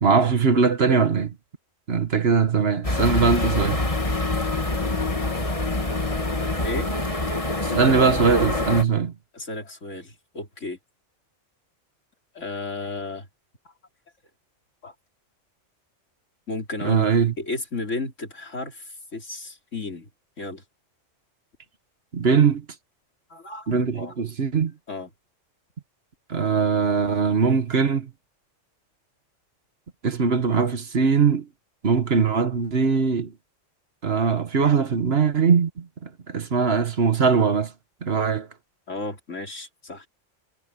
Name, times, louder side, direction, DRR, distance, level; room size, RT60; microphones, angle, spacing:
voice 1, 0.0-1.3 1.9-3.8 7.6-9.1 16.8-17.3 22.1-22.6 23.7-24.7 26.3-28.1 30.0-31.5 31.8-33.3 34.0-37.7 38.0-38.5, right 5 dB, 55° right, 1.5 m, -21 dB
sound 1, 2.8-8.8, left 2 dB, 25° left, 2.1 m, -25 dB
voice 2, 9.3-10.8 12.3-13.3 14.8-14.9 16.5-17.1 17.4-20.1 20.4-20.6 23.3-24.1 24.9-25.1 38.9-40.1, left 2 dB, 75° left, 3.9 m, -33 dB
omnidirectional pair, 1.3 m